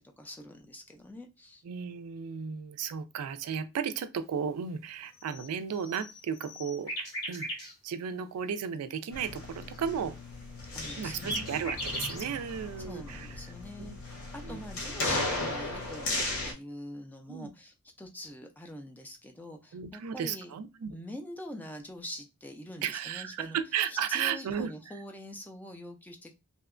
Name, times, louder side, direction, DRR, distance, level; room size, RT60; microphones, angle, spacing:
voice 1, 0.0-1.6 10.7-11.6 12.8-20.5 20.9-23.6 23.9-26.3, left 1 dB, 10° left, 0.3 m, -44 dB
voice 2, 1.6-10.1 11.0-13.3 13.8-14.0 14.4-14.6 17.3-17.5 19.7-20.9 22.8-24.7, right 7 dB, 75° right, 0.3 m, -34 dB
sound 1, 5.2-7.7 10.8-12.3, equal, 85° left, 1.3 m, -38 dB
sound 2, 9.1-16.5, left 2 dB, 65° left, 0.9 m, -36 dB
2.7 x 2.1 x 2.4 m
head